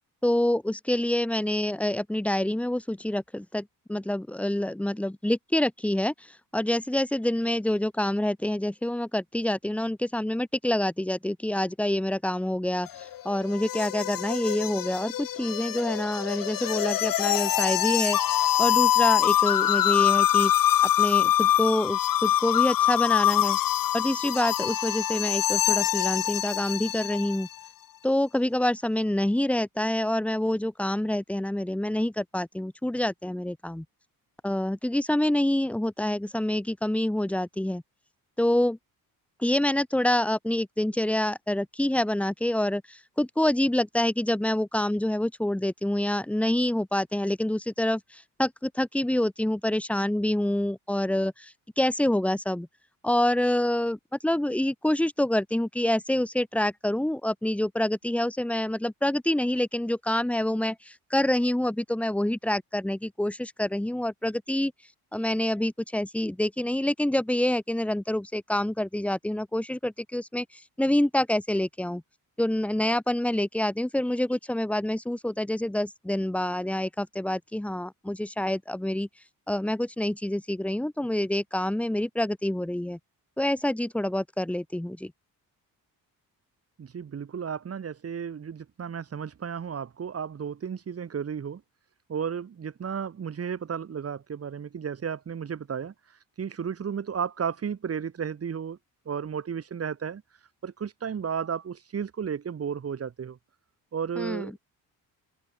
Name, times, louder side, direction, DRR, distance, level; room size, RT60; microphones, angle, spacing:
voice 1, 0.2-20.5 21.0-23.6 23.9-27.5 28.0-33.9 34.4-37.8 38.4-38.8 39.4-52.7 53.0-64.7 65.1-72.0 72.4-79.1 79.5-83.0 83.4-85.1 104.2-104.6, left 1 dB, 5° left, 2.1 m, -27 dB
sound 1, 12.9-27.5, left 12 dB, 60° left, 1.8 m, -24 dB
voice 2, 86.8-91.6 92.1-98.8 99.0-100.2 100.6-103.4 103.9-104.6, right 7 dB, 40° right, 6.7 m, -33 dB
open air
cardioid pair, 150°, 38 cm